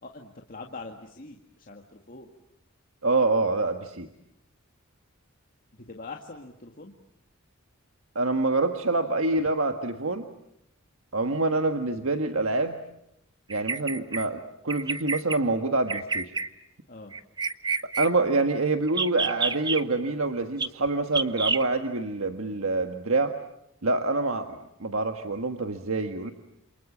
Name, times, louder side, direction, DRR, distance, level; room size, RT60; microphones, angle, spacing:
voice 1, 0.0-2.3 5.7-6.9 16.9-17.2, left 3 dB, 45° left, 1 dB, 2.0 m, -43 dB
voice 2, 3.0-4.1 8.1-10.2 11.1-12.8 13.5-16.3 18.0-23.3 23.8-26.3, right 3 dB, 75° right, 5 dB, 1.5 m, -26 dB
Bird vocalization bird call bird song, 13.5-14.3 14.7-15.4 15.9-16.5 17.1-18.1 18.9-19.8 20.6-20.7 21.1-21.6, right 4 dB, 20° right, 1.0 m, -28 dB
28.0 x 28.0 x 7.4 m, 0.81 s
head